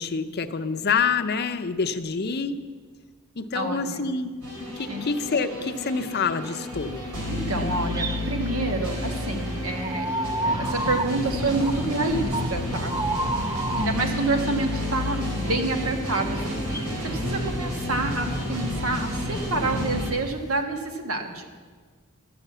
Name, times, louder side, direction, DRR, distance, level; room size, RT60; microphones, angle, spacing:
voice 1, 0.0-2.6 3.4-4.3 4.8-7.1, left 5 dB, 45° left, 8 dB, 0.6 m, -27 dB
voice 2, 3.5-4.0 4.9-5.0 7.3-10.1 10.4-12.9 13.7-16.5 17.0-21.5, right 2 dB, 75° right, 4 dB, 1.5 m, -28 dB
sound 1, 4.4-20.1, left 1 dB, 90° right, 4.0 m, -30 dB
sound 2, 7.8-8.3 9.8-11.2 11.6-11.8 12.2-14.0 16.5-16.9 19.1-19.8, right 2 dB, 15° right, 0.4 m, -30 dB
13.5 x 6.8 x 8.3 m, 1.5 s
head